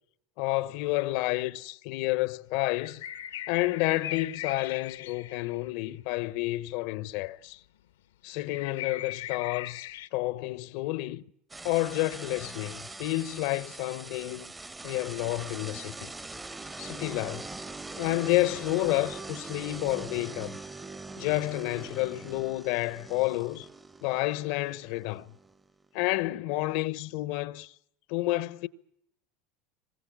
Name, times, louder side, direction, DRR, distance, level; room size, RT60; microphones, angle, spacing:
voice 1, 0.4-3.0 3.5-7.6 8.2-11.2 11.6-14.5 14.8-16.1 16.8-17.5 18.0-20.6 21.2-23.7 24.0-25.3 25.9-27.7 28.1-28.7, left 19 dB, 65° left, 0.9 m, -30 dB
sound 1, 2.7-5.7 8.5-10.1, left 13 dB, 85° left, 1.1 m, -39 dB
sound 2, 11.5-26.0, right 3 dB, 15° right, 1.0 m, -42 dB
25.5 x 21.0 x 7.3 m
hypercardioid pair, 95°, 0 cm